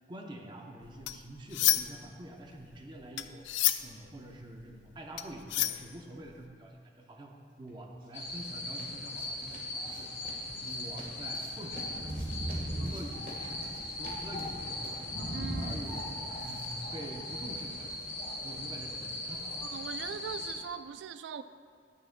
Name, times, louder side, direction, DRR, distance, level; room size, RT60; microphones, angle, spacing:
voice 1, 0.1-3.5 3.8-10.1 10.5-12.1 12.7-15.1 15.6-17.9 18.4-19.6, right 1 dB, 25° right, 2 dB, 0.7 m, -46 dB
sound 1, 0.8-2.1 2.4-6.4, left 14 dB, 85° left, 0.4 m, -31 dB
sound 2, 7.7-17.7, right 1 dB, 50° right, 1.4 m, -52 dB
sound 3, 8.1-20.6, left 1 dB, 45° left, 2.1 m, -38 dB
voice 2, 15.3-15.8 19.6-21.4, right 7 dB, 75° right, 12 dB, 0.3 m, -41 dB
11.0 x 9.1 x 2.2 m, 2.2 s
head